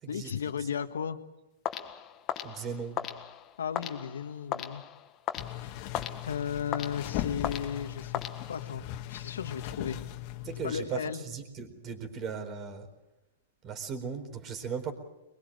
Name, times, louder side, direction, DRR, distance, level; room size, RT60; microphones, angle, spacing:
voice 1, 0.1-1.2 3.6-4.8 5.6-5.7 6.3-8.1 8.5-10.0 10.6-11.2, left 7 dB, 85° left, 9 dB, 1.7 m, -35 dB
sound 1, 1.6-8.9, left 9 dB, 25° left, 1.8 m, -38 dB
voice 2, 2.4-3.0 10.4-12.9 13.6-14.9, right 6 dB, 30° right, 7 dB, 4.3 m, -37 dB
sound 2, 5.4-10.8, left 12 dB, 45° left, 2.0 m, -38 dB
23.0 x 22.5 x 7.9 m, 0.97 s
hypercardioid pair, 135°, 0 cm